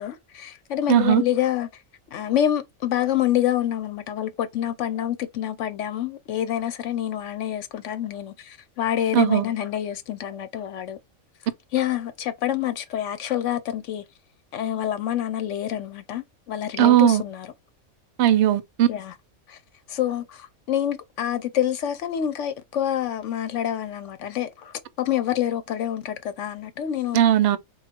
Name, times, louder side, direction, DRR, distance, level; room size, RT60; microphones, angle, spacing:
voice 1, 0.0-1.7 2.1-11.0 11.7-14.0 14.5-17.5 18.9-19.1 19.5-19.6 19.9-27.2, left 11 dB, 65° left, 0.9 m, -27 dB
voice 2, 0.9-1.2 9.1-9.4 16.8-17.2 18.2-18.9 27.1-27.6, right 12 dB, 60° right, 0.7 m, -17 dB
3.9 x 2.3 x 4.3 m
omnidirectional pair, 1.4 m